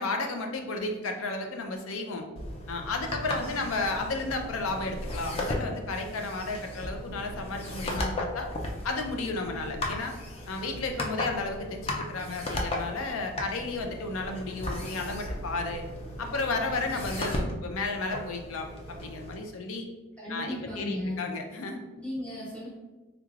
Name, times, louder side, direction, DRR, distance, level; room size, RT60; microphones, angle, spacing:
voice 1, 0.0-2.3 2.7-8.5 8.8-10.1 10.5-15.8 16.2-19.9 20.3-21.8, left 3 dB, 85° left, 4 dB, 0.5 m, -33 dB
sound 1, 2.4-19.3, left 1 dB, 30° left, 0.4 m, -36 dB
voice 2, 3.3-3.7 20.2-21.2 21.9-22.7, left 1 dB, 5° left, -9 dB, 1.0 m, -36 dB
3.4 x 3.2 x 2.4 m, 1.2 s
head